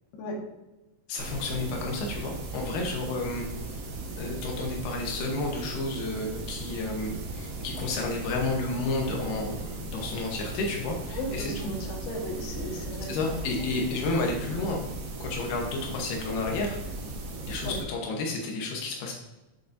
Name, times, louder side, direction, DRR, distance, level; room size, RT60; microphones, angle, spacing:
voice 1, 1.1-3.4 4.2-11.7 13.1-14.8 15.2-16.8 17.5-19.1, left 3 dB, 80° left, 0 dB, 2.9 m, -31 dB
sound 1, 1.2-17.8, right 2 dB, 70° right, 1.4 m, -37 dB
voice 2, 11.1-13.1 17.6-17.8, left 1 dB, 60° left, -2 dB, 2.6 m, -35 dB
8.2 x 6.4 x 2.6 m, 1.0 s
omnidirectional pair, 4.5 m